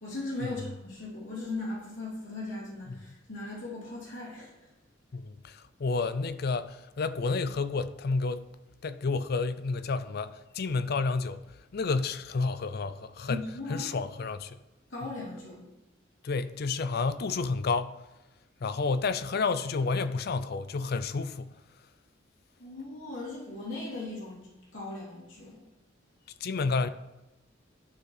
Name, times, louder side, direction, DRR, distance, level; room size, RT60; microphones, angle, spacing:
voice 1, 0.0-4.7 13.3-13.9 14.9-15.6 22.6-25.6, left 2 dB, 75° left, 2.9 m, -38 dB
voice 2, 5.1-8.4 8.8-11.4 11.7-13.4 13.7-14.6 16.2-18.0 18.6-21.5 26.4-26.9, left 4 dB, 50° left, 0.4 m, -30 dB
11.5 x 4.7 x 4.8 m
head